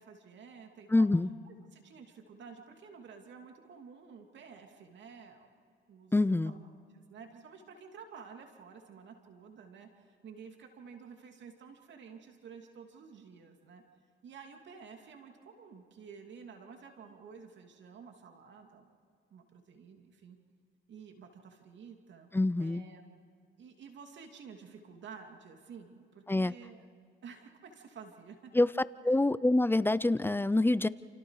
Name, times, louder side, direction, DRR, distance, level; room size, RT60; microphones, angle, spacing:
voice 1, 0.0-1.1 1.4-5.5 5.9-6.6 6.9-13.8 14.2-18.9 19.3-20.4 20.9-22.3 22.6-23.0 23.6-26.9 27.2-28.5 29.0-29.2, right 6 dB, 65° right, 4 dB, 2.7 m, -51 dB
voice 2, 0.9-1.3 6.1-6.5 22.3-22.8 26.3-26.5 28.5-28.7 29.0-30.9, left 2 dB, 10° left, 16 dB, 0.6 m, -26 dB
29.5 x 29.0 x 4.9 m, 2.3 s
cardioid pair, 90°, 20 cm